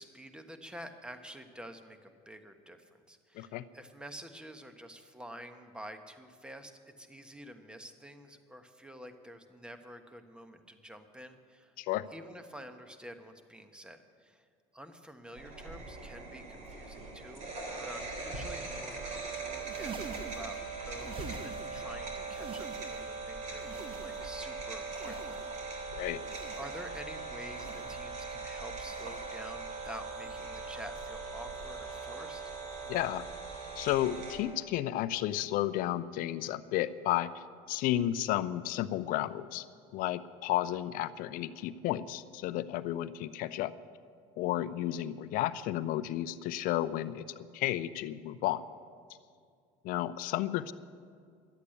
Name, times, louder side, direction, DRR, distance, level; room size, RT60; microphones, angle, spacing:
voice 1, 0.0-11.7 12.1-14.4 14.7-17.5 17.8-25.4 26.5-32.4, equal, 5° right, 7 dB, 1.2 m, -48 dB
voice 2, 3.3-3.7 11.8-12.1 25.9-26.2 32.9-33.2 33.8-39.7 39.9-43.7 44.4-48.6 49.8-50.7, left 13 dB, 65° left, 15 dB, 0.6 m, -32 dB
sound 1, 15.4-34.4, right 3 dB, 50° right, 3.6 m, -40 dB
sound 2, 19.5-21.9 22.2-23.2 23.5-24.5 24.9-25.7 26.2-26.9 27.5-28.1 28.8-29.4 30.1-30.7 31.5-31.9 32.8-33.1 34.1-34.3 35.5-35.6, right 5 dB, 35° right, 0.8 m, -48 dB
12.0 x 8.2 x 10.0 m, 2.2 s
supercardioid pair, 95°, 15 cm